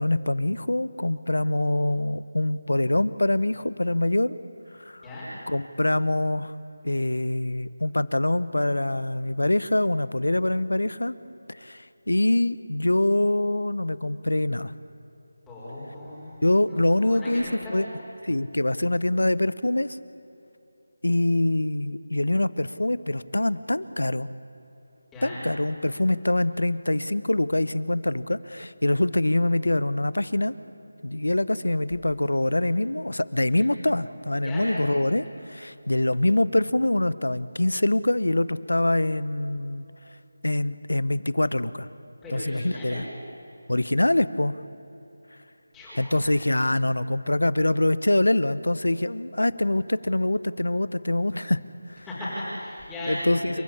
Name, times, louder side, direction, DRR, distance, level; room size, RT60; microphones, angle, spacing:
voice 1, 0.0-4.4 4.9-5.0 5.5-6.5 6.8-11.2 11.5-14.7 16.4-17.9 18.3-20.0 21.0-24.3 25.2-30.5 31.0-39.8 40.4-41.9 42.3-43.0 43.7-44.5 46.0-51.6 51.9-52.1 53.1-53.6, left 1 dB, 90° left, 17 dB, 1.0 m, -24 dB
voice 2, 15.5-16.4 16.7-17.9 25.1-25.5 33.5-33.7 34.4-35.0 42.2-43.0 45.7-46.4 52.0-53.6, left 1 dB, 5° left, -12 dB, 5.0 m, -36 dB
29.5 x 14.0 x 8.6 m, 3.0 s
figure-of-eight pair, 165°, 0 cm